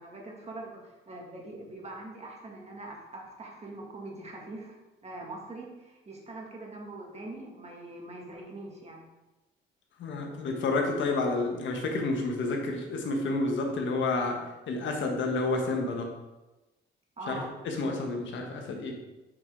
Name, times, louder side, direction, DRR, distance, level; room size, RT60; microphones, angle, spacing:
voice 1, 0.0-4.7 5.0-9.0 17.2-17.5, right 2 dB, 35° right, -1 dB, 2.1 m, -43 dB
voice 2, 10.0-14.4 14.7-16.1 17.3-17.4 17.6-19.0, left 3 dB, 70° left, 2 dB, 1.5 m, -29 dB
8.3 x 4.8 x 3.8 m, 1.1 s
cardioid pair, 90°, 20 cm